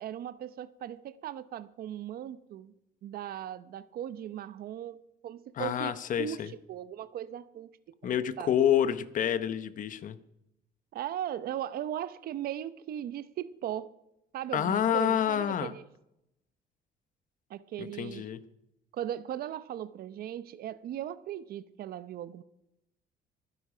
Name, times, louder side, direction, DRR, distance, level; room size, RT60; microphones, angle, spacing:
voice 1, 0.0-2.7 3.0-8.1 8.4-8.5 10.9-13.9 14.3-15.8 17.5-18.2 18.9-22.4, right 11 dB, 65° right, 0.8 m, -38 dB
voice 2, 5.6-6.5 8.0-10.2 14.5-15.7 17.8-18.4, left 9 dB, 50° left, 1.0 m, -28 dB
23.5 x 10.0 x 5.1 m
cardioid pair, 110°, 17 cm